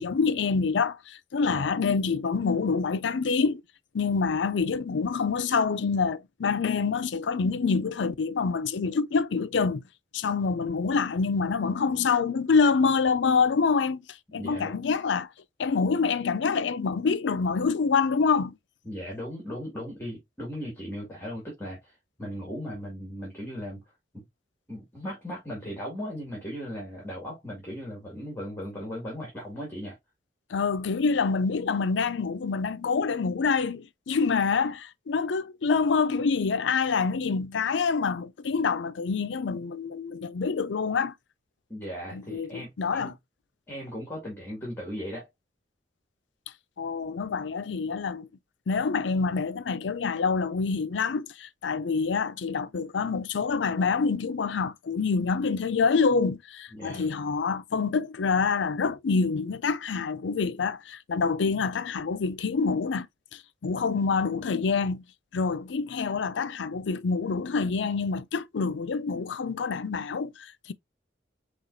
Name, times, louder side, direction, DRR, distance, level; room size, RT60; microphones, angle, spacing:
voice 1, 0.0-3.6 3.9-9.8 10.1-14.0 14.3-15.3 15.6-18.6 30.5-41.1 42.1-43.1 46.8-48.3 48.7-63.1 63.6-65.0 65.3-70.7, left 5 dB, 90° left, 0.5 m, -26 dB
voice 2, 1.4-1.8 14.3-14.8 18.8-23.8 24.1-24.2 24.7-30.0 41.7-43.1 43.7-45.3 56.7-57.1, equal, 15° left, 2.0 m, -37 dB
5.8 x 3.1 x 2.5 m
head